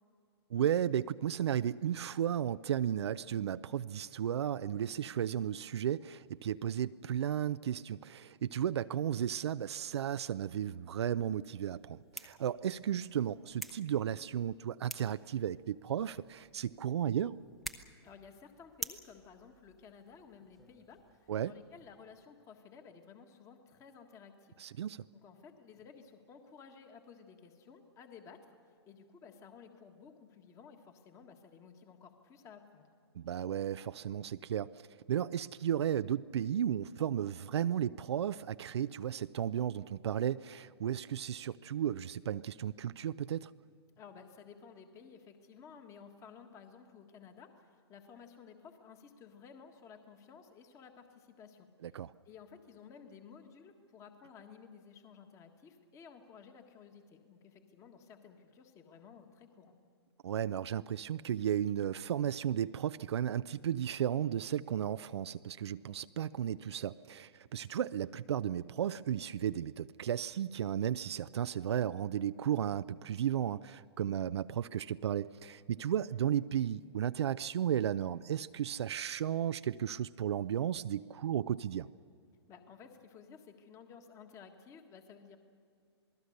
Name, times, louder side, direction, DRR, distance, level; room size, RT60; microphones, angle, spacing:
voice 1, 0.5-17.4 21.3-21.5 24.6-25.0 33.2-34.7 35.1-43.5 51.8-52.1 60.2-81.9, right 10 dB, 70° right, 12 dB, 0.5 m, -34 dB
sound 1, 11.2-22.3, right 1 dB, ahead, 0.9 m, -51 dB
voice 2, 18.0-24.6 25.1-32.9 44.0-51.7 52.2-59.7 82.5-85.4, left 6 dB, 20° left, 6 dB, 1.6 m, -55 dB
27.5 x 19.5 x 6.6 m, 2.3 s
hypercardioid pair, 140°, 14 cm